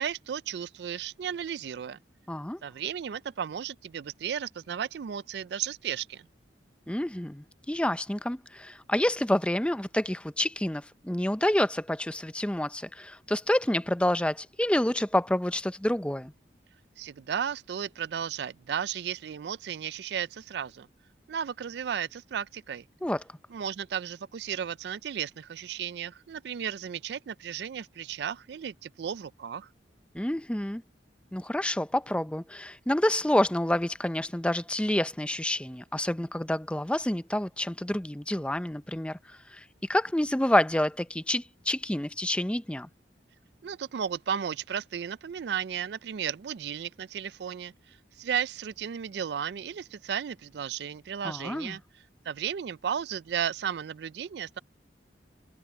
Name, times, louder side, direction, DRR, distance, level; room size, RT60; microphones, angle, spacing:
voice 1, 0.0-2.0 2.6-6.3 17.0-20.9 21.3-22.8 23.5-29.7 43.6-51.8 52.2-54.6, right 8 dB, 65° right, 0.4 m, -34 dB
voice 2, 2.3-2.6 6.9-16.3 23.0-23.2 30.1-30.8 31.3-39.6 39.9-42.9 51.2-51.8, left 1 dB, 5° left, 0.5 m, -28 dB
head